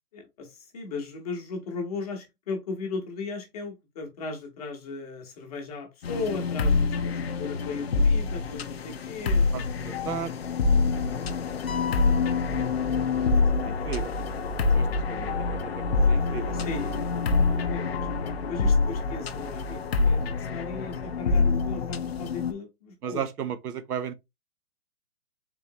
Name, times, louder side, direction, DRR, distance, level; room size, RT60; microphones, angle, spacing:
voice 1, 0.1-7.1 7.4-9.5 11.2-11.3 13.4-13.5 16.5-23.2, left 4 dB, 25° left, 0.9 m, -37 dB
sound 1, 6.0-22.5, left 4 dB, 45° left, 0.4 m, -26 dB
voice 2, 9.5-10.3 13.1-13.3 13.6-14.1 14.7-16.7 23.0-24.1, right 8 dB, 85° right, 0.8 m, -35 dB
sound 2, 11.7-13.6, left 7 dB, 70° left, 0.8 m, -38 dB
3.8 x 3.0 x 2.7 m
hypercardioid pair, 160°, 45 cm